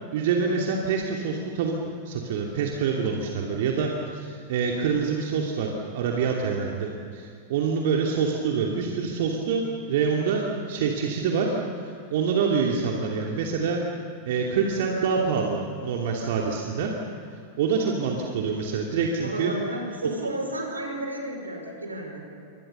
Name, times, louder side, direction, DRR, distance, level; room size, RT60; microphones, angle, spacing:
voice 1, 0.1-1.8 2.0-13.8 14.2-16.9 17.6-19.5, right 5 dB, 55° right, 0 dB, 2.7 m, -26 dB
voice 2, 19.2-22.3, right 1 dB, 80° right, 2 dB, 5.2 m, -32 dB
28.5 x 25.0 x 6.9 m, 2.5 s
figure-of-eight pair, 90°, 0 cm